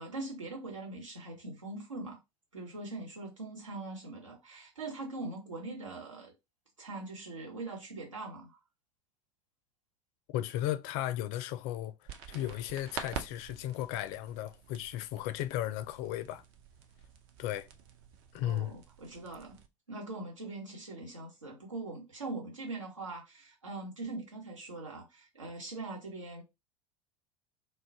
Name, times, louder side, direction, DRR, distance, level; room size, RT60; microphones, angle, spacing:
voice 1, 0.0-2.2 2.5-6.3 6.8-8.6 18.4-19.6 19.9-26.4, right 2 dB, 90° right, 1.2 m, -42 dB
voice 2, 10.3-11.9 12.3-16.4 17.4-17.7 18.3-18.7, left 13 dB, 50° left, 0.4 m, -35 dB
sound 1, 12.1-19.7, right 7 dB, 55° right, 0.5 m, -47 dB
2.4 x 2.1 x 3.6 m
figure-of-eight pair, 75°, 16 cm